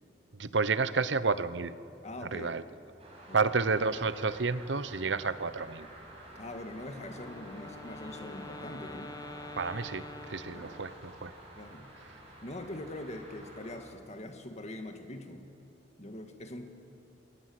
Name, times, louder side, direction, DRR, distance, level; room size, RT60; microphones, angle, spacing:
voice 1, 0.3-1.7 2.2-2.6 3.3-5.9 9.6-11.3, right 4 dB, 80° right, 14 dB, 0.9 m, -30 dB
voice 2, 2.0-2.6 3.3-3.4 6.4-9.1 10.5-10.8 11.6-11.9 12.4-15.5 16.0-16.7, left 1 dB, 40° left, 5 dB, 1.7 m, -43 dB
sound 1, 3.0-13.8, right 1 dB, 35° right, 6.8 m, -50 dB
Wind instrument woodwind instrument, 7.1-11.2, left 2 dB, 20° left, 0.6 m, -47 dB
27.5 x 22.0 x 7.9 m, 2.9 s
head